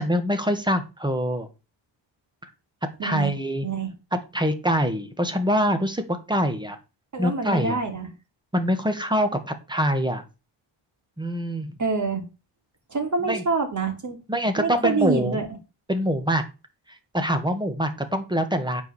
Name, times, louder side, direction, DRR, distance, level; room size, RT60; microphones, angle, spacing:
voice 1, 0.0-1.5 3.0-3.7 4.1-6.8 7.2-7.8 8.5-10.2 11.2-11.7 13.2-13.4 14.3-15.4 15.9-16.4 16.9-18.8, equal, 10° right, 7 dB, 1.6 m, -24 dB
voice 2, 3.0-3.3 3.6-3.9 7.1-8.1 11.8-12.2 12.9-14.2 14.6-15.5, right 4 dB, 35° right, 3 dB, 3.1 m, -26 dB
9.3 x 4.8 x 7.1 m, 0.29 s
wide cardioid pair, 145°, 47 cm